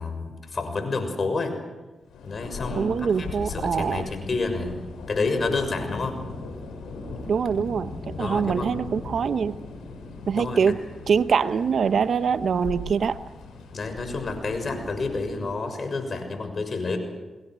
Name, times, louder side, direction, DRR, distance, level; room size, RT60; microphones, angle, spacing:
voice 1, 0.0-1.5 2.2-4.8 5.1-6.2 8.2-8.7 10.3-10.6 13.7-17.0, left 3 dB, 55° left, 7 dB, 6.5 m, -29 dB
Thunder, 2.1-15.7, left 3 dB, 85° left, 6.1 m, -38 dB
voice 2, 2.8-4.0 7.3-9.6 10.3-13.2, right 6 dB, 65° right, 12 dB, 1.0 m, -24 dB
30.0 x 21.0 x 6.3 m, 1.2 s
supercardioid pair, 45°, 0 cm